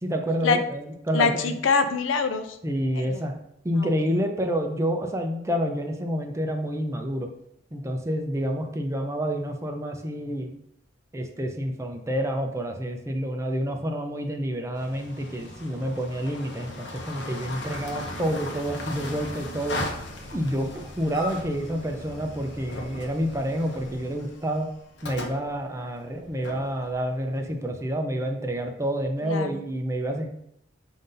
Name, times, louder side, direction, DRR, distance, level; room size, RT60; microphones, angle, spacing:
voice 1, 0.0-1.6 2.6-3.3 3.6-7.3 7.7-10.5 11.1-19.8 20.3-24.7 25.0-30.3, equal, 15° right, 4 dB, 0.4 m, -28 dB
voice 2, 1.1-2.6 2.9-3.2 3.8-3.9 29.2-29.6, left 5 dB, 90° left, 8 dB, 0.5 m, -24 dB
sound 1, 14.8-27.8, left 1 dB, 65° left, 0.8 m, -38 dB
5.3 x 2.6 x 3.8 m, 0.75 s
head